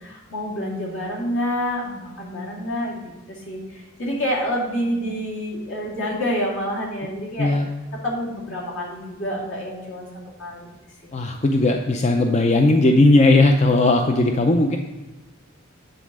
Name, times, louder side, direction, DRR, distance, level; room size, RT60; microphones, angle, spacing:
voice 1, 0.0-3.0 3.3-7.5 8.0-10.1 10.4-10.7, equal, 70° left, -4 dB, 2.6 m, -27 dB
voice 2, 11.1-14.8, left 2 dB, 35° left, 4 dB, 0.5 m, -17 dB
9.3 x 4.1 x 6.1 m, 1.1 s
head